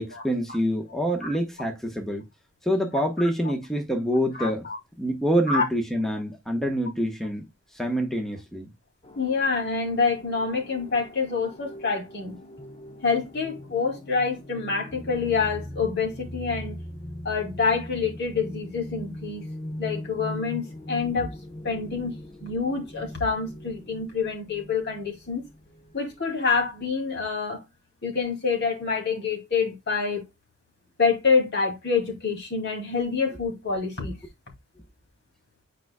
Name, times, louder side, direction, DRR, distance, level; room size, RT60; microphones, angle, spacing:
voice 1, 0.0-2.2 2.6-4.7 5.0-7.5 7.7-8.7, equal, ahead, 1.0 m, -26 dB
voice 2, 4.4-4.8 5.5-5.6 9.1-12.4 13.0-16.8 17.2-19.4 19.8-21.4 21.6-25.5 25.9-27.6 28.0-30.3 31.0-34.2, left 5 dB, 55° left, 2.5 m, -27 dB
sound 1, 9.0-26.2, left 1 dB, 30° left, 0.8 m, -40 dB
8.8 x 4.8 x 2.2 m
head